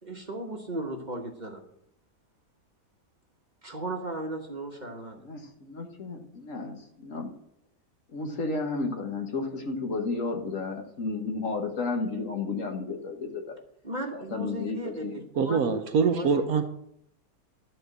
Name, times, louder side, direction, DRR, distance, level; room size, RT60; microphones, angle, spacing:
voice 1, 0.0-1.6 3.6-5.2 13.8-15.8 16.1-16.4, right 1 dB, 30° right, 2 dB, 1.1 m, -36 dB
voice 2, 5.2-7.3 8.1-13.6 14.1-15.2, left 3 dB, 50° left, 3 dB, 1.5 m, -32 dB
voice 3, 15.4-16.6, right 5 dB, 65° right, 7 dB, 1.1 m, -24 dB
12.0 x 4.4 x 8.1 m, 0.74 s
omnidirectional pair, 1.8 m